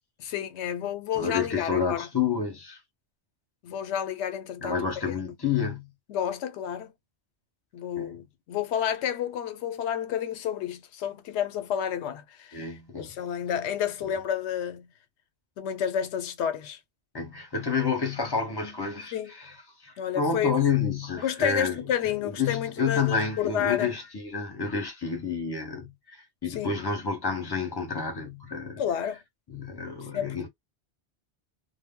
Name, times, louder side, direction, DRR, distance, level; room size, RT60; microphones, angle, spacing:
voice 1, 0.2-2.1 3.6-4.9 5.3-5.4 6.1-6.9 7.7-14.9 15.6-16.8 19.1-19.3 20.0-20.6 21.2-23.9 26.5-26.7 28.8-29.2 30.1-30.5, left 9 dB, 90° left, 0.9 m, -30 dB
voice 2, 1.2-2.8 4.6-5.9 8.0-8.2 12.5-13.2 17.1-19.1 19.8-21.8 22.2-28.8 29.5-30.5, left 5 dB, 25° left, 0.7 m, -29 dB
2.1 x 2.0 x 3.6 m
omnidirectional pair, 1.1 m